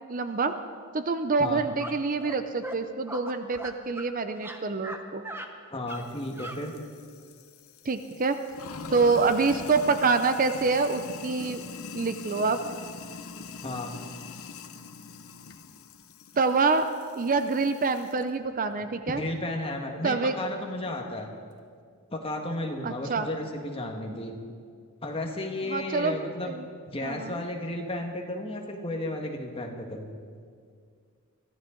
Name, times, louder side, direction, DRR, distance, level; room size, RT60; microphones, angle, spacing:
voice 1, 0.1-0.6 0.9-5.3 7.8-8.4 8.9-11.6 11.9-12.6 16.4-19.2 20.0-20.3 22.8-23.3 25.7-26.7 27.0-27.4, right 4 dB, 40° right, 9 dB, 0.6 m, -26 dB
sound 1, 1.8-1.9 2.2-2.4 2.6-2.8 3.1-4.1 4.4-5.0 5.2-5.5 5.9-6.0 6.4-6.6, right 1 dB, 10° right, 0.9 m, -38 dB
voice 2, 5.7-6.7 13.6-14.0 19.1-21.3 22.1-24.3 25.0-26.5 26.8-30.1, left 1 dB, 25° left, 2 dB, 1.6 m, -33 dB
Sink (filling or washing), 5.9-18.2, left 5 dB, 70° left, 0.8 m, -43 dB
23.0 x 15.0 x 3.9 m, 2.1 s
head